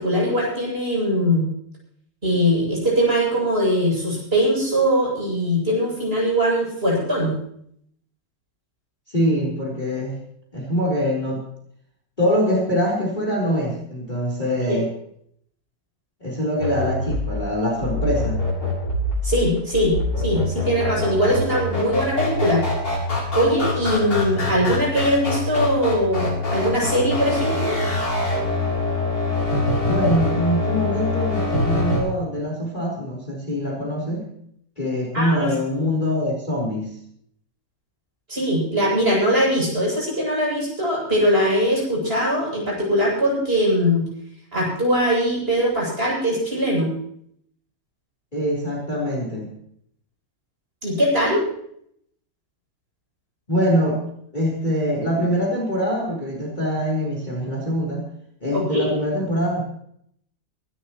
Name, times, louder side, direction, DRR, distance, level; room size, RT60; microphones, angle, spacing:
voice 1, 0.0-1.4 2.2-7.3 14.7-14.8 19.2-22.6 23.3-27.8 35.1-35.5 38.3-44.0 44.5-46.9 50.8-51.4 58.5-58.9, equal, 30° right, -4 dB, 8.3 m, -21 dB
voice 2, 9.1-10.2 10.5-11.4 12.2-14.9 16.2-18.5 29.8-34.3 34.8-36.9 48.3-49.5 53.5-54.0 54.3-58.1 58.4-59.6, equal, 25° left, -2 dB, 4.3 m, -23 dB
sound 1, 16.6-32.0, left 2 dB, 80° left, 7.6 m, -24 dB
24.0 x 13.0 x 3.1 m, 0.68 s
omnidirectional pair, 1.9 m